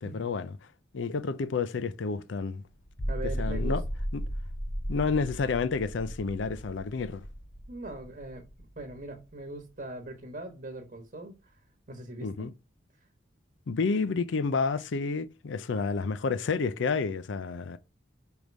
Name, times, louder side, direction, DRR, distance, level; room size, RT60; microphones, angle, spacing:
voice 1, 0.0-0.6 0.9-2.6 3.4-3.8 4.1-4.2 4.9-7.2 12.2-12.5 13.7-17.8, left 4 dB, 65° left, 0.5 m, -30 dB
sound 1, 2.8-9.3, equal, 20° left, 0.6 m, -35 dB
voice 2, 3.1-3.9 7.7-8.5 8.8-11.3 11.9-12.5, right 2 dB, 40° right, 1.2 m, -41 dB
5.2 x 4.7 x 5.2 m
head